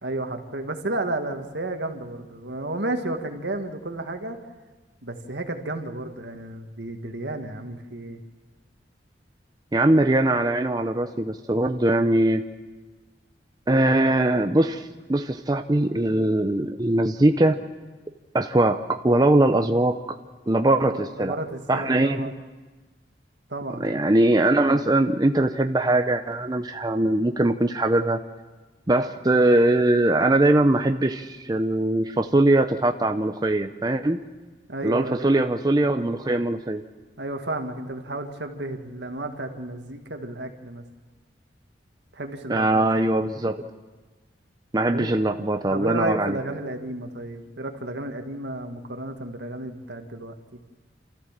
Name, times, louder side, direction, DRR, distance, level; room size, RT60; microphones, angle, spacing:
voice 1, 0.0-4.4 5.0-8.2 20.8-22.4 23.5-23.9 34.7-35.5 37.2-40.8 42.1-42.8 44.9-45.1 45.7-50.6, right 2 dB, 75° right, 5 dB, 1.8 m, -32 dB
voice 2, 9.7-12.4 13.7-17.6 18.3-20.0 20.5-21.3 21.7-22.3 23.8-28.2 28.9-34.2 34.8-36.8 42.5-43.7 44.7-46.4, right 1 dB, 20° right, 6 dB, 0.6 m, -21 dB
28.0 x 14.0 x 7.4 m, 1.3 s
head